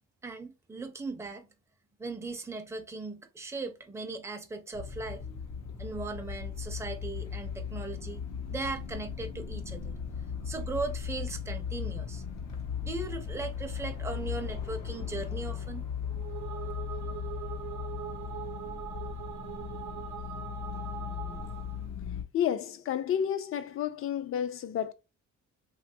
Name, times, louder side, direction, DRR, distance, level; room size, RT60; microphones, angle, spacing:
voice 1, 0.2-1.5 2.0-5.3 5.8-8.2 8.5-9.9 10.4-12.2 12.8-15.9, right 3 dB, 10° right, 0.5 m, -38 dB
sound 1, 4.7-22.2, left 7 dB, 90° left, 0.8 m, -37 dB
sound 2, 16.1-21.8, right 11 dB, 85° right, 0.6 m, -42 dB
voice 2, 22.3-24.9, left 9 dB, 45° left, 0.4 m, -30 dB
2.9 x 2.3 x 2.6 m
cardioid pair, 90°, 30 cm